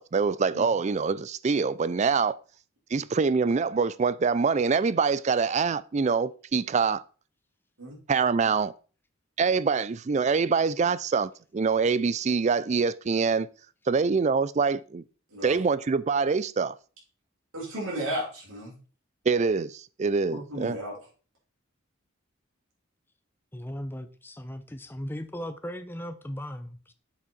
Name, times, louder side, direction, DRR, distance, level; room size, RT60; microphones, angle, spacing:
voice 1, 0.0-2.4 2.9-7.0 8.1-8.7 9.4-13.5 13.9-15.0 15.4-16.7 19.3-20.8, right 5 dB, 35° right, 0.4 m, -25 dB
voice 2, 17.5-18.8 20.3-21.0, right 1 dB, 85° right, 4.4 m, -34 dB
voice 3, 23.5-26.9, equal, 10° left, 0.6 m, -37 dB
7.4 x 7.1 x 4.2 m
head